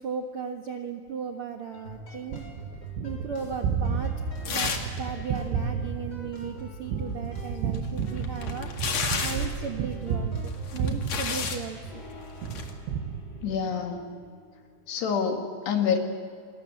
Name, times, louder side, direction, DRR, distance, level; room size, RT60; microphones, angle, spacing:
voice 1, 0.0-2.4 3.0-4.1 4.4-4.7 5.0-8.8 9.2-12.0, right 6 dB, 65° right, 3 dB, 1.4 m, -36 dB
sound 1, 1.7-15.1, equal, 30° left, 4.1 m, -44 dB
Gunshot gunfire, 2.3-12.0 12.4-13.8, right 6 dB, 85° right, 3.7 m, -32 dB
sound 2, 4.5-5.0 5.3-5.4 7.7-9.6 10.5-11.6 12.4-12.7, left 5 dB, 45° left, 2.8 m, -31 dB
voice 2, 13.4-14.1 14.9-16.0, left 6 dB, 75° left, 3 dB, 4.4 m, -27 dB
29.0 x 22.0 x 7.7 m, 2.2 s
omnidirectional pair, 4.9 m